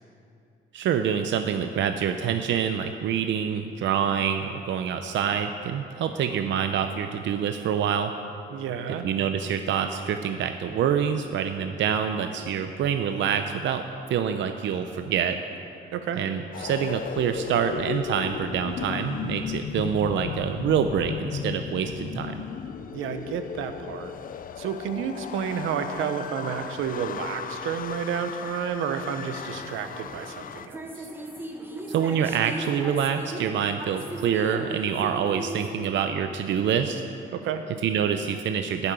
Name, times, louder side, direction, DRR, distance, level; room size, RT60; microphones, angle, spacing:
voice 1, 0.7-8.1 9.0-13.8 14.1-15.4 16.2-22.4 31.9-37.0 37.8-38.9, right 8 dB, 70° right, 7 dB, 0.6 m, -26 dB
voice 2, 8.5-9.1 15.9-16.2 22.9-24.1 24.6-31.1 37.3-37.6, right 7 dB, 90° right, 8 dB, 0.9 m, -31 dB
sound 1, 16.5-30.7, left 8 dB, 45° left, 0.4 m, -36 dB
sound 2, 30.0-35.7, right 1 dB, 10° right, 1.4 m, -37 dB
11.5 x 7.0 x 9.3 m, 2.7 s
cardioid pair, 90°, 20 cm